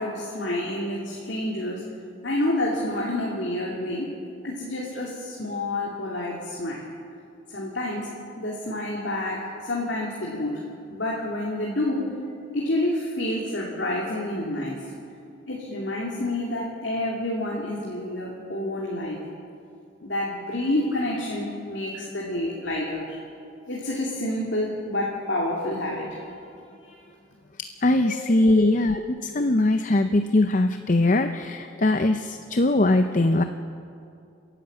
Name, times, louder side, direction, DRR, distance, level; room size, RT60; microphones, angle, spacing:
voice 1, 0.0-1.8 2.2-4.1 4.4-6.9 7.5-8.1 8.4-10.6 10.9-12.1 12.5-14.8 15.5-19.2 20.0-23.2 23.7-26.3 26.8-26.9 28.0-28.1 28.4-28.7, left 1 dB, 60° left, -3 dB, 2.7 m, -28 dB
voice 2, 27.6-33.4, left 2 dB, 40° left, 8 dB, 0.6 m, -21 dB
29.5 x 11.0 x 8.2 m, 2.5 s
head